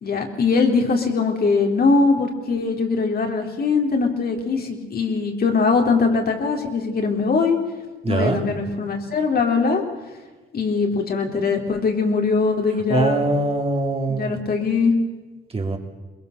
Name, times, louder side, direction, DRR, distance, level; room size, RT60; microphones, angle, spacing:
voice 1, 0.0-7.6 8.1-9.8 10.5-13.3 14.1-14.9, left 4 dB, 50° left, 2 dB, 3.9 m, -21 dB
voice 2, 8.0-8.4 12.9-14.3 15.5-15.8, right 2 dB, 30° right, 3 dB, 3.2 m, -22 dB
22.5 x 21.0 x 6.8 m, 1.2 s
cardioid pair, 90°, 20 cm